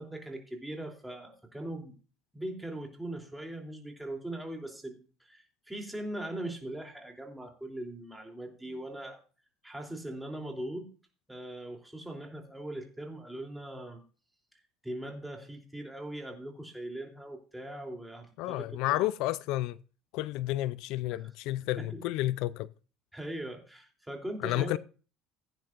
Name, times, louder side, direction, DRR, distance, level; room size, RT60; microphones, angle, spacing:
voice 1, 0.0-1.9 2.3-9.2 9.6-10.8 11.3-14.0 14.8-19.1 21.8-22.0 23.1-24.8, right 1 dB, 5° right, 3.2 m, -40 dB
voice 2, 18.4-19.8 20.1-22.7 24.4-24.8, left 16 dB, 70° left, 0.4 m, -31 dB
16.5 x 9.5 x 2.5 m
supercardioid pair, 110°, 0 cm